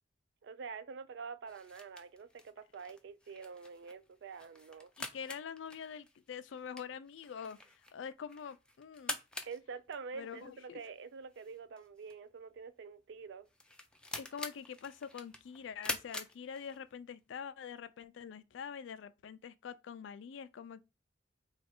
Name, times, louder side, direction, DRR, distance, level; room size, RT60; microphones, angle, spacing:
voice 1, 0.4-4.9 9.5-13.5, right 5 dB, 65° right, 0.4 m, -46 dB
sound 1, 1.5-17.1, left 2 dB, 5° left, 0.4 m, -47 dB
voice 2, 5.0-7.6 7.9-9.2 10.1-10.8 14.1-20.8, left 7 dB, 70° left, 0.3 m, -45 dB
3.2 x 2.3 x 4.3 m
head